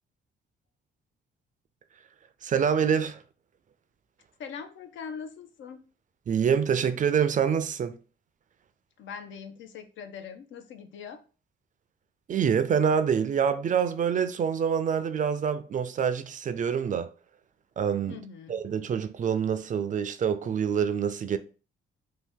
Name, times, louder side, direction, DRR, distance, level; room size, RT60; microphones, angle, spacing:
voice 1, 2.4-3.2 6.3-8.0 12.3-17.1 17.8-18.2 18.5-21.4, right 7 dB, 40° right, 0.4 m, -26 dB
voice 2, 4.4-5.8 9.0-11.2 18.1-18.6, left 6 dB, 75° left, 0.6 m, -41 dB
2.8 x 2.6 x 3.5 m
cardioid pair, 90°, 20 cm